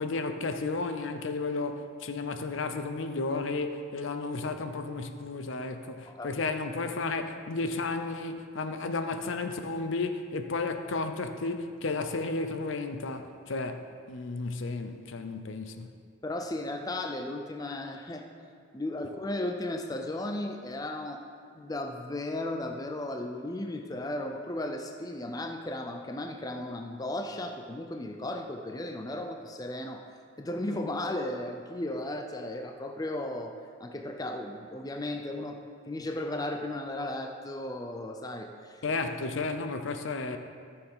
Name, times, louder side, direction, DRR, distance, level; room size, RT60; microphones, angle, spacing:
voice 1, 0.0-15.9 38.8-40.4, left 3 dB, 65° left, 7 dB, 0.6 m, -33 dB
voice 2, 16.2-18.3 18.7-21.2 21.5-30.1 30.4-35.6 35.9-38.8, left 1 dB, 20° left, 4 dB, 0.4 m, -35 dB
14.0 x 7.1 x 3.6 m, 2.2 s
head